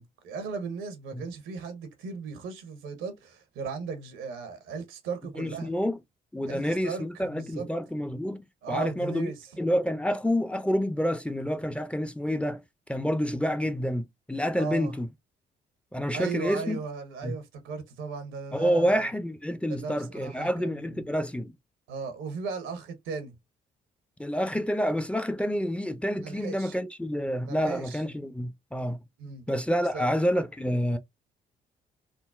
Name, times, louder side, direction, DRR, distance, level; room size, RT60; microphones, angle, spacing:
voice 1, 0.0-5.7 6.5-7.7 8.6-9.4 14.6-14.9 16.1-19.0 19.7-21.0 21.9-23.4 26.2-26.8 27.5-28.0 29.2-29.5 29.9-30.1, right 5 dB, 75° right, 1.0 m, -37 dB
voice 2, 5.4-6.0 6.3-9.3 9.6-12.6 12.9-15.1 15.9-16.8 17.2-17.3 18.5-21.5 24.2-29.0 29.5-31.0, equal, 5° left, 0.6 m, -28 dB
3.7 x 2.0 x 2.4 m
hypercardioid pair, 50°, 20 cm